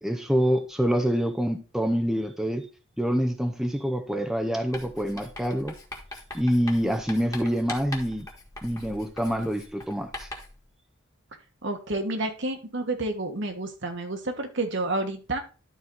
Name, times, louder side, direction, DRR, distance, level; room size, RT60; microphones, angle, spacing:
voice 1, 0.0-2.7 3.0-5.7 6.3-8.3 8.6-10.3, equal, ahead, 5 dB, 0.6 m, -26 dB
Writing, 4.7-10.6, left 2 dB, 15° left, 1.6 m, -41 dB
voice 2, 11.6-15.4, right 2 dB, 65° right, 4 dB, 1.5 m, -30 dB
12.0 x 4.2 x 3.9 m, 0.34 s
head